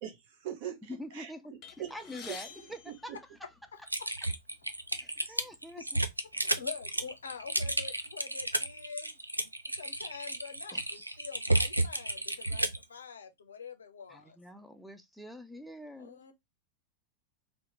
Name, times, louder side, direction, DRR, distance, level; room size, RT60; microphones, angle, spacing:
voice 1, 0.0-1.3 1.8-1.9 2.9-3.2, right 10 dB, 50° right, 0.8 m, -41 dB
voice 2, 0.9-3.2 5.0-6.0 10.7-10.8 14.1-16.3, left 1 dB, ahead, 0.4 m, -46 dB
sound 1, 1.6-4.0 4.8-4.9 5.2-5.4 6.3-6.4 6.9-8.1, left 6 dB, 35° left, 0.7 m, -50 dB
voice 3, 3.7-4.1 6.3-14.4 16.0-16.3, left 6 dB, 70° left, 0.5 m, -46 dB
Typing, 3.9-12.8, right 1 dB, 85° right, 0.3 m, -32 dB
2.8 x 2.1 x 2.8 m
figure-of-eight pair, 90°, 0 cm